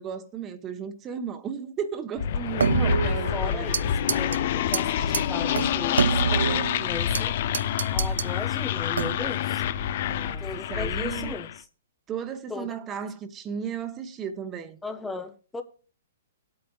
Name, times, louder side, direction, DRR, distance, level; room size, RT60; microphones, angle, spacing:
voice 1, 0.0-3.8 9.8-11.4 12.1-14.8, right 7 dB, 20° right, 1.0 m, -35 dB
sound 1, 2.2-11.6, left 10 dB, 50° left, 0.6 m, -27 dB
sound 2, 2.6-3.8 4.1-4.4 4.7-4.8 5.1-5.2 5.6-7.2 7.5-8.3 8.9-9.4, right 5 dB, 85° right, 0.4 m, -26 dB
voice 2, 2.7-7.4 7.9-9.6 10.4-11.7 12.5-12.7 14.8-15.6, left 3 dB, 10° left, 0.8 m, -37 dB
18.0 x 8.7 x 2.4 m
hypercardioid pair, 145°, 0 cm